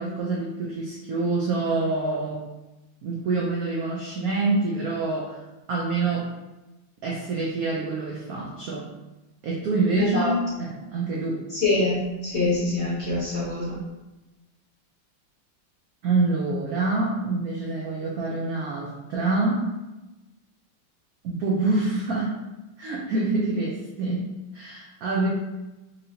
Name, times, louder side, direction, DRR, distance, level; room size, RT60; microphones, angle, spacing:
voice 1, 0.0-2.4 3.0-5.4 5.7-6.3 7.0-8.9 9.4-11.4 16.0-19.7 21.2-22.3 22.8-25.3, right 3 dB, 90° right, -3 dB, 0.7 m, -26 dB
voice 2, 10.0-10.3 11.5-13.7, left 2 dB, 45° left, -7 dB, 0.9 m, -25 dB
4.6 x 2.6 x 2.8 m, 1.0 s
omnidirectional pair, 2.3 m